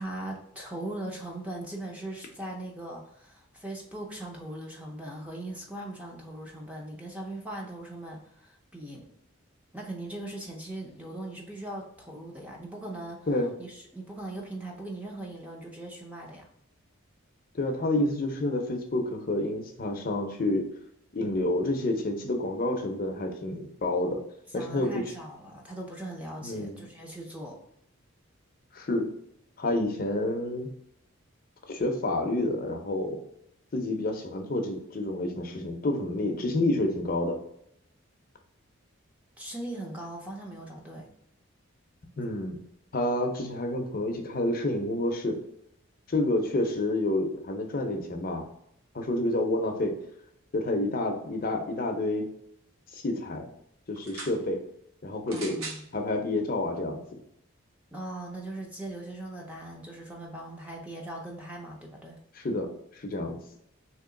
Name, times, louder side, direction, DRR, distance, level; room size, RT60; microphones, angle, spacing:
voice 1, 0.0-9.1 9.7-13.2 13.6-16.5 24.5-27.6 39.4-41.1 55.3-55.9 57.9-62.2, right 1 dB, 5° right, -1 dB, 0.5 m, -39 dB
voice 2, 17.5-20.7 21.1-24.2 24.5-25.0 26.4-26.8 28.7-29.1 29.6-30.7 31.7-33.2 33.7-37.4 42.2-42.6 42.9-45.4 46.1-48.5 48.9-49.9 50.5-52.3 52.9-53.5 53.9-54.6 55.0-55.6 55.9-57.0 62.3-62.7 62.9-63.4, left 1 dB, 40° left, 4 dB, 0.5 m, -29 dB
sound 1, 53.9-54.4 55.3-55.9 56.8-56.9, right 3 dB, 70° right, 0.8 m, -40 dB
2.9 x 2.9 x 3.7 m, 0.74 s
head